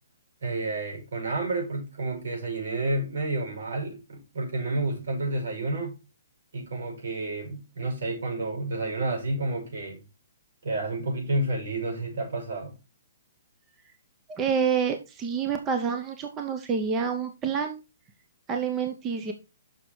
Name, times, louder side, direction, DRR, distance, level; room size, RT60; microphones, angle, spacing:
voice 1, 0.4-6.0 6.5-10.0 10.6-12.7, right 2 dB, 75° right, 5.7 m, -30 dB
voice 2, 14.4-17.8 18.5-19.3, right 6 dB, 15° right, 0.6 m, -28 dB
6.7 x 6.2 x 4.4 m
hypercardioid pair, 175°, 0 cm